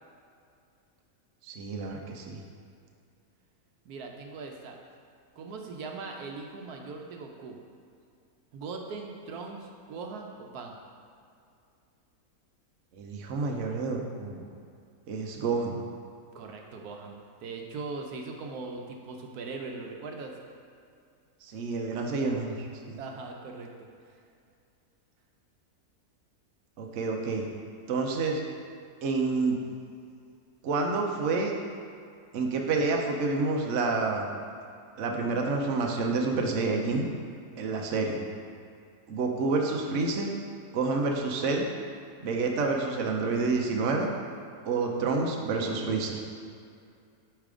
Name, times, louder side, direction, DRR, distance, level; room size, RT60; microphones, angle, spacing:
voice 1, 1.4-2.4 12.9-14.4 15.1-15.8 21.4-23.0 26.8-27.4 27.9-28.4 29.0-29.6 30.6-31.5 32.3-34.3 35.0-37.0 37.6-38.2 39.1-40.3 40.7-41.6 42.2-44.1 44.6-46.2, right 3 dB, 60° right, 1 dB, 1.0 m, -28 dB
voice 2, 3.9-4.8 5.4-7.6 8.5-10.7 16.3-20.3 23.0-23.9, right 4 dB, 80° right, 2 dB, 1.2 m, -40 dB
8.5 x 3.3 x 4.9 m, 2.4 s
omnidirectional pair, 1.6 m